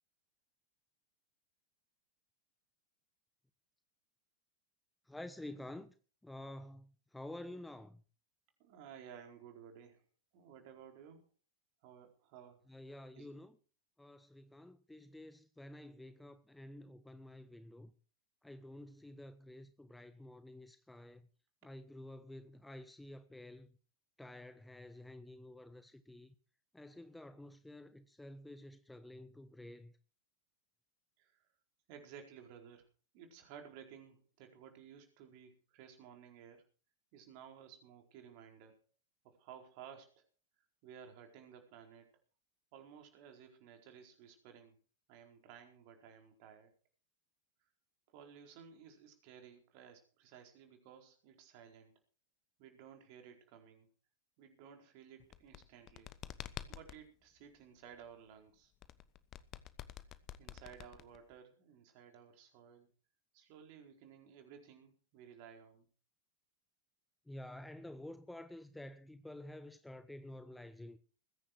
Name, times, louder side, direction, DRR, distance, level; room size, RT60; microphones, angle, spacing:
voice 1, 5.1-5.9 6.2-8.0 12.7-13.6 14.0-17.9 18.4-21.3 21.6-23.8 24.2-26.3 26.7-30.0 67.3-71.0, left 1 dB, 5° left, 1.0 m, -50 dB
voice 2, 8.6-10.0 10.3-11.3 11.8-12.7 13.1-13.3 21.6-21.7 31.2-31.5 31.9-32.9 33.1-36.6 37.1-38.8 39.2-40.2 40.8-42.1 42.7-44.8 45.1-46.7 48.1-52.0 52.6-53.9 54.4-56.1 56.7-58.7 60.4-62.9 63.3-65.9, right 8 dB, 45° right, 4.4 m, -56 dB
sound 1, 55.2-57.0 58.8-61.4, left 12 dB, 35° left, 1.1 m, -48 dB
21.0 x 10.0 x 4.6 m
figure-of-eight pair, 90°, 0 cm